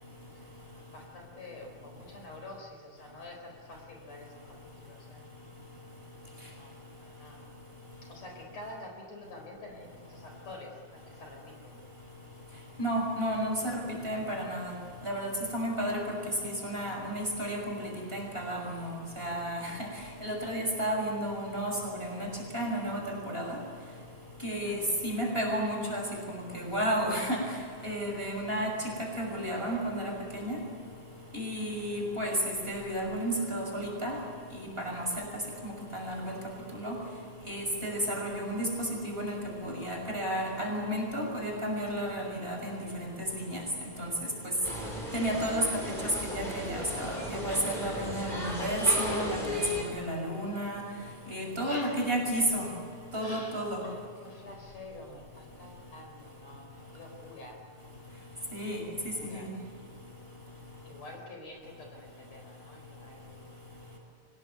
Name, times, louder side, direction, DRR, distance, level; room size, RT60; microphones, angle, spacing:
voice 1, 0.9-5.2 6.3-7.5 8.0-11.8 24.6-24.8 51.4-52.1 52.4-52.7 53.2-57.6 59.1-59.5 60.8-63.6 63.9-64.0, left 2 dB, 55° left, 2 dB, 5.4 m, -48 dB
voice 2, 12.8-14.7 15.0-16.2 16.4-19.7 20.2-22.3 22.5-23.6 24.4-24.8 25.0-26.0 26.3-27.4 27.8-28.7 29.0-30.6 31.3-34.2 34.5-35.2 35.6-36.3 36.7-36.9 37.4-39.4 39.6-43.6 44.0-44.1 45.1-45.7 46.2-50.8 51.3-52.7 53.1-53.8 58.5-59.5, right 1 dB, 15° right, -1 dB, 6.4 m, -32 dB
sound 1, 44.6-49.8, left 1 dB, 15° left, 4.9 m, -35 dB
24.5 x 20.5 x 9.4 m, 2.2 s
omnidirectional pair, 3.5 m